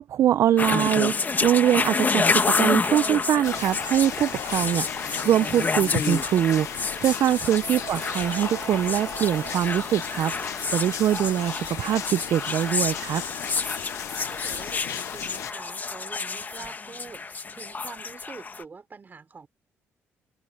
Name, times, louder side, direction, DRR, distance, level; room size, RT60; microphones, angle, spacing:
voice 1, 0.0-13.2, right 11 dB, 65° right, 0.5 m, -23 dB
sound 1, 0.6-18.6, left 4 dB, 35° left, 1.7 m, -29 dB
sound 2, 1.3-12.7, right 14 dB, 90° right, 1.4 m, -44 dB
sound 3, 3.4-15.5, left 13 dB, 75° left, 0.5 m, -37 dB
voice 2, 14.0-19.5, right 4 dB, 35° right, 3.7 m, -45 dB
open air
supercardioid pair, 70°, 5 cm